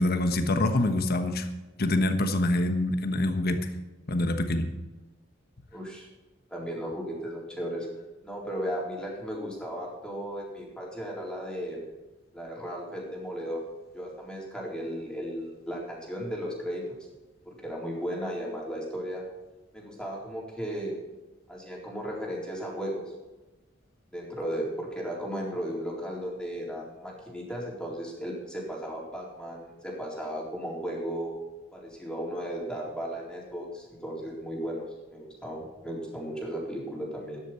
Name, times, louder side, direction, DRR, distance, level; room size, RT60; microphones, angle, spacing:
voice 1, 0.0-1.5 1.8-3.6 4.1-4.7, left 1 dB, 55° left, 7 dB, 1.3 m, -25 dB
voice 2, 5.7-6.1 6.5-7.9 8.2-11.8 12.3-13.6 13.9-16.8 17.4-19.2 19.7-20.9 21.5-23.0 24.1-31.3 31.7-34.8 35.1-37.4, equal, 5° left, -3 dB, 4.0 m, -35 dB
13.5 x 10.5 x 4.5 m, 1.1 s
head